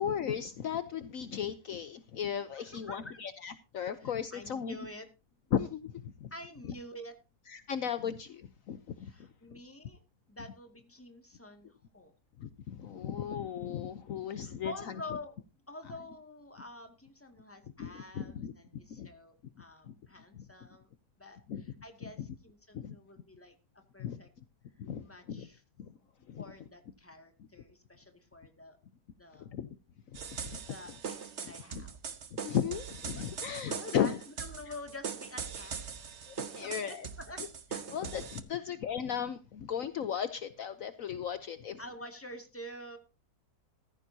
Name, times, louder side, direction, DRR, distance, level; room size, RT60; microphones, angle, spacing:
voice 1, 0.0-4.8 5.5-6.3 6.6-6.7 7.5-9.1 12.4-15.0 17.8-18.5 18.9-19.1 19.8-19.9 20.3-20.4 21.5-21.6 22.2-22.3 22.7-22.9 24.0-24.2 24.8-25.5 25.8-25.9 26.3-26.4 29.4-29.7 30.4-30.6 31.7-31.8 32.3-34.2 36.3-37.1 37.9-41.8, left 8 dB, 65° left, 11 dB, 1.2 m, -36 dB
voice 2, 2.5-3.2 4.0-5.1 6.3-7.1 9.0-10.0 10.3-12.1 14.3-15.3 15.7-20.9 21.2-23.5 23.9-24.3 25.0-25.6 26.4-28.8 29.2-29.5 30.6-31.9 33.1-33.2 33.7-36.0 36.6-37.4 41.8-43.0, left 1 dB, 10° left, 5 dB, 2.1 m, -48 dB
sound 1, 30.1-38.4, right 6 dB, 50° right, 1.3 m, -41 dB
15.0 x 14.5 x 2.8 m, 0.29 s
omnidirectional pair, 1.6 m